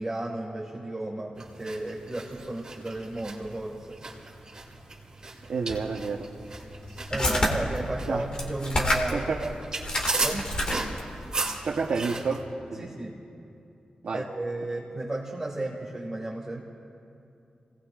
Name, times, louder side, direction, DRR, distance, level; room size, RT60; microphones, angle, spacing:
voice 1, 0.0-4.0 7.1-9.3 10.2-10.8 12.8-13.1 14.1-16.6, right 2 dB, 20° right, -5 dB, 1.9 m, -33 dB
sound 1, 1.4-12.4, right 3 dB, 35° right, 2.6 m, -37 dB
voice 2, 5.5-6.3 8.1-8.2 9.1-9.5 11.6-12.4 12.7-12.9 14.0-14.2, right 4 dB, 70° right, 0 dB, 0.9 m, -29 dB
sound 2, 5.7-5.8 6.5-7.5 8.2-9.2 9.5-9.6 9.8-11.1, left 1 dB, 35° left, 1.9 m, -28 dB
29.5 x 18.5 x 2.5 m, 2.6 s
wide cardioid pair, 145°, 2 cm